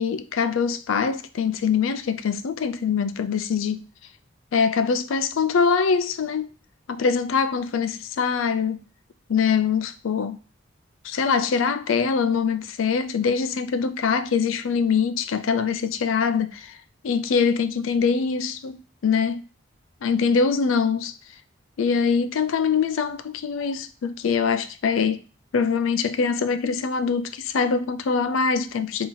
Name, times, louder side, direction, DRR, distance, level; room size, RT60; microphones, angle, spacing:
voice 1, 0.0-3.8 4.5-6.5 6.9-8.8 9.3-10.4 11.0-16.8 17.0-19.4 20.0-21.1 21.8-25.2 25.5-29.1, left 6 dB, 80° left, 0.4 m, -23 dB
3.8 x 2.8 x 4.1 m
head